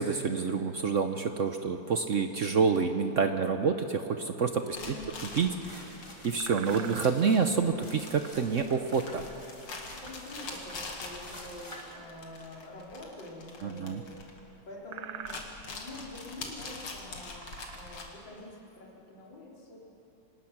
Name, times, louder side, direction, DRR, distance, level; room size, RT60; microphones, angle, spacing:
voice 1, 0.0-4.9 5.3-5.9 6.2-9.2 13.6-14.0, right 5 dB, 65° right, 7 dB, 0.7 m, -28 dB
voice 2, 4.6-5.1 6.6-7.5 10.0-14.2 14.7-19.8, left 1 dB, 60° left, -4 dB, 4.4 m, -46 dB
sound 1, 4.7-14.8 15.1-18.1, left 3 dB, 85° left, 3.0 m, -44 dB
sound 2, 4.9-5.0 5.4-12.8, equal, 15° left, 2.6 m, -49 dB
sound 3, 6.4-7.3 10.3-10.4 13.8-13.9 14.4-14.5 14.8-15.7 16.4-16.5 17.1-18.1, right 9 dB, 85° right, 1.7 m, -43 dB
26.0 x 19.5 x 6.0 m, 2.9 s
omnidirectional pair, 2.3 m